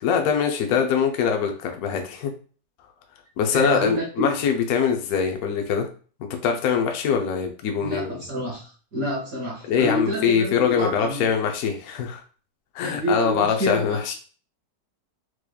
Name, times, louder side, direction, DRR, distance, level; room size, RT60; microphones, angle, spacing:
voice 1, 0.0-2.3 3.4-5.9 6.4-8.2 9.7-12.2 12.7-14.1, left 7 dB, 70° left, 3 dB, 0.9 m, -23 dB
voice 2, 3.5-4.3 7.8-11.3 12.8-14.0, equal, 55° right, -2 dB, 1.4 m, -28 dB
4.7 x 3.0 x 2.2 m, 0.40 s
omnidirectional pair, 1.9 m